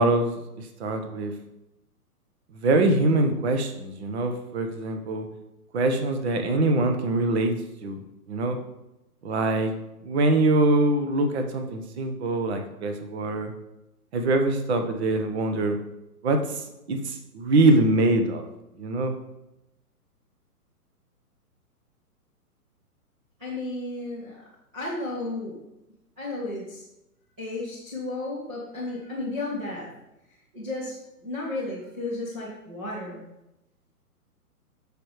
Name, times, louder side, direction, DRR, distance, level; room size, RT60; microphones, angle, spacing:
voice 1, 0.0-1.3 2.6-5.3 5.7-7.5 7.8-8.0 8.3-8.6 9.2-9.7 10.0-13.5 14.1-15.8 16.2-18.5 18.8-19.1, right 2 dB, 45° right, 6 dB, 1.2 m, -23 dB
voice 2, 23.4-24.4 24.7-25.6 26.2-26.8 27.4-29.9 30.3-33.2, left 2 dB, 5° right, -9 dB, 0.4 m, -33 dB
13.0 x 5.2 x 3.2 m, 0.89 s
figure-of-eight pair, 125°, 46 cm